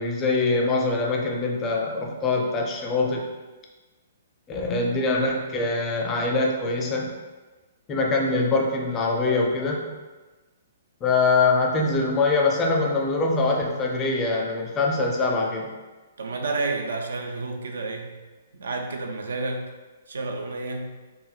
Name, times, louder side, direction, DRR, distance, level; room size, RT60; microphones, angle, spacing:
voice 1, 0.0-3.3 4.5-7.1 7.9-9.9 11.0-15.7, left 3 dB, 20° left, 0 dB, 0.4 m, -23 dB
voice 2, 16.2-18.2 18.5-19.7 20.1-21.0, right 3 dB, 65° right, 4 dB, 0.3 m, -30 dB
3.3 x 2.1 x 2.2 m, 1.2 s
figure-of-eight pair, 120°, 0 cm